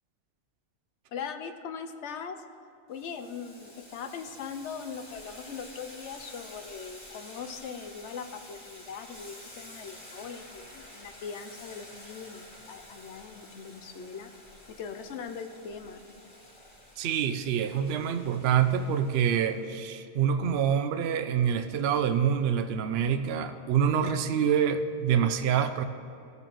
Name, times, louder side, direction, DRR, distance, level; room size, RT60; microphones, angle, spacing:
voice 1, 1.1-2.4 2.9-14.3 14.7-16.0, left 6 dB, 75° left, 8 dB, 0.9 m, -40 dB
Boiling, 2.9-19.7, left 1 dB, 30° left, 2.0 m, -50 dB
voice 2, 17.0-25.8, right 8 dB, 65° right, 8 dB, 0.8 m, -26 dB
15.0 x 6.8 x 3.0 m, 2.6 s
omnidirectional pair, 1.2 m